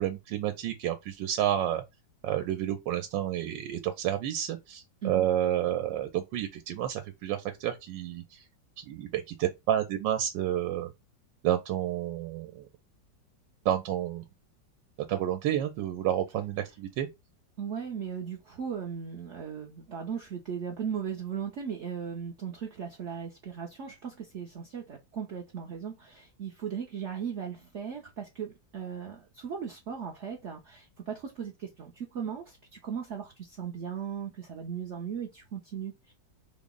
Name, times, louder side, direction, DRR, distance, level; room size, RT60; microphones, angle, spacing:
voice 1, 0.0-1.8 2.2-8.4 8.8-10.9 11.4-12.7 13.6-14.2 15.1-17.1, right 11 dB, 85° right, 1.3 m, -30 dB
voice 2, 17.6-36.1, right 7 dB, 65° right, 0.7 m, -37 dB
3.8 x 2.0 x 3.5 m
omnidirectional pair, 2.0 m